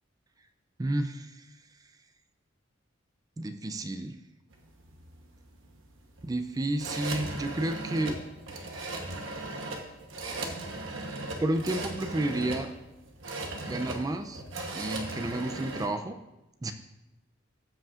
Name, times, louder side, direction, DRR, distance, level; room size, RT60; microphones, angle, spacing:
voice 1, 0.8-1.4 3.4-4.2 6.2-8.2 11.4-12.7 13.7-14.4 14.7-16.2 16.6-16.7, right 1 dB, 20° right, 7 dB, 0.4 m, -31 dB
sound 1, 4.5-15.9, right 2 dB, 75° right, 1.0 m, -38 dB
14.5 x 5.2 x 2.5 m, 0.96 s
head